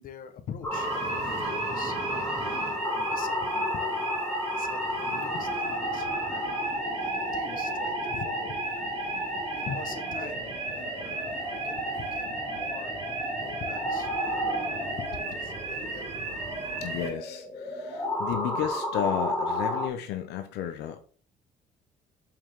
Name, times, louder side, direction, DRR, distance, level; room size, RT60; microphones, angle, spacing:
voice 1, 0.0-4.1 4.6-8.5 9.5-11.7 12.1-16.2, left 7 dB, 55° left, 7 dB, 1.3 m, -44 dB
sound 1, 0.6-19.9, left 1 dB, 15° left, 3.3 m, -32 dB
sound 2, 0.7-17.1, right 3 dB, 35° right, 3.9 m, -35 dB
voice 2, 16.8-21.0, left 10 dB, 85° left, 7 dB, 0.9 m, -33 dB
6.9 x 5.9 x 3.7 m, 0.40 s
cardioid pair, 110°, 17 cm